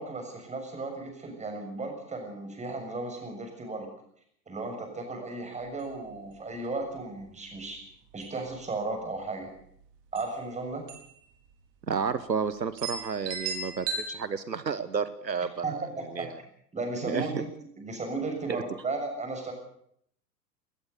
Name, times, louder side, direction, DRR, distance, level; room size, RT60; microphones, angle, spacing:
voice 1, 0.0-3.9 4.5-7.8 8.1-9.5 10.1-10.8 15.6-16.3 16.7-17.5 17.8-19.5, right 3 dB, 15° right, 4 dB, 6.8 m, -35 dB
sound 1, 5.7-5.8 6.1-6.2 6.6-7.0 7.6-7.8 8.1-8.7 9.8-9.9 10.2-10.3 10.9-11.2 11.5-11.6 12.2-12.3 12.8-14.0, right 4 dB, 50° right, 4.8 m, -35 dB
voice 2, 11.9-15.9 16.1-16.4 17.0-17.4, right 6 dB, 85° right, 14 dB, 1.2 m, -31 dB
20.5 x 20.5 x 7.0 m, 0.68 s
figure-of-eight pair, 95°, 49 cm